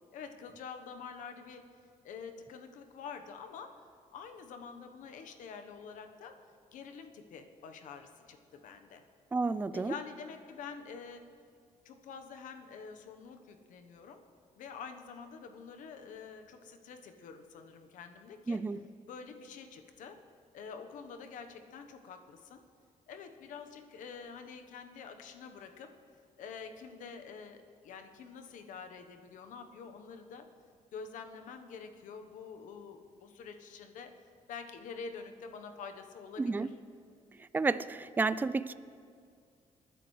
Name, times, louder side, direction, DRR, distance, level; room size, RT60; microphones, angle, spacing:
voice 1, 0.1-1.6 2.0-3.8 4.1-6.3 6.7-9.0 9.7-11.2 11.8-14.2 14.6-18.6 19.1-20.2 20.5-22.6 23.1-25.9 26.4-30.4 30.9-34.1 34.5-36.7, left 5 dB, 80° left, 6 dB, 1.1 m, -47 dB
voice 2, 9.3-9.9 18.5-18.8 36.4-36.7 37.5-38.7, right 3 dB, 15° right, 15 dB, 0.4 m, -31 dB
27.0 x 9.8 x 3.2 m, 2.2 s
cardioid pair, 105°, 13 cm